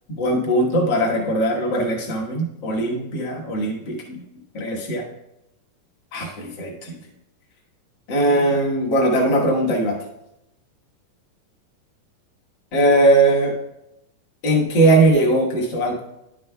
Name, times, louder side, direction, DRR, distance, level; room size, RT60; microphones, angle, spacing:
voice 1, 0.1-4.2 4.5-5.0 6.1-7.0 8.1-10.0 12.7-13.5 14.4-16.0, right 1 dB, 60° left, -2 dB, 1.1 m, -19 dB
11.0 x 7.5 x 2.3 m, 0.86 s
omnidirectional pair, 4.0 m